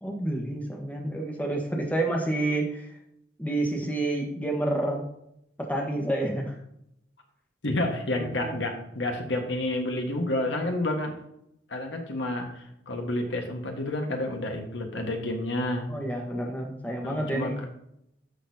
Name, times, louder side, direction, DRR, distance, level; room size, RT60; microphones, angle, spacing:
voice 1, 0.0-2.9 3.4-5.0 5.6-6.6 8.1-8.5 15.9-17.6, right 1 dB, 10° left, 0 dB, 1.3 m, -29 dB
voice 2, 7.6-11.1 11.7-15.9 17.0-17.5, left 1 dB, 85° left, 2 dB, 1.5 m, -30 dB
11.0 x 6.6 x 2.8 m, 0.79 s
head